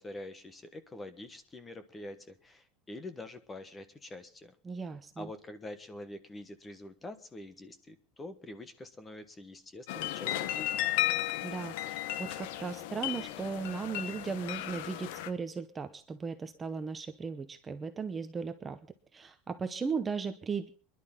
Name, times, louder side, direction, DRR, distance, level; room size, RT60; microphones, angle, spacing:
voice 1, 0.0-4.5 5.2-10.8, left 1 dB, 15° left, 11 dB, 1.2 m, -46 dB
voice 2, 4.6-5.3 11.4-18.8 19.1-20.7, right 5 dB, 15° right, 8 dB, 0.8 m, -37 dB
sound 1, 9.9-15.3, left 14 dB, 75° left, 0.9 m, -34 dB
26.0 x 11.0 x 3.7 m, 0.39 s
cardioid pair, 165°, 0 cm